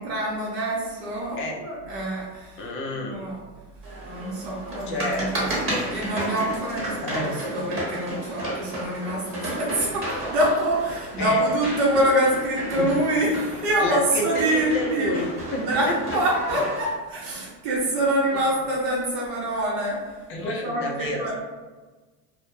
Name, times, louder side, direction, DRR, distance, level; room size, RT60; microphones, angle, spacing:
voice 1, 0.0-2.7 2.9-3.4 4.0-5.6 5.9-15.1 15.5-21.3, right 1 dB, 70° right, -4 dB, 0.8 m, -25 dB
voice 2, 2.6-3.3 4.9-5.3 5.7-5.9 7.0-7.3 11.2-11.4 12.8-12.9 13.8-16.0 20.3-21.3, left 1 dB, 30° left, 0 dB, 0.3 m, -29 dB
sound 1, 3.8-16.9, right 1 dB, 25° right, 0.9 m, -33 dB
2.1 x 2.1 x 2.9 m, 1.3 s
hypercardioid pair, 100°, 48 cm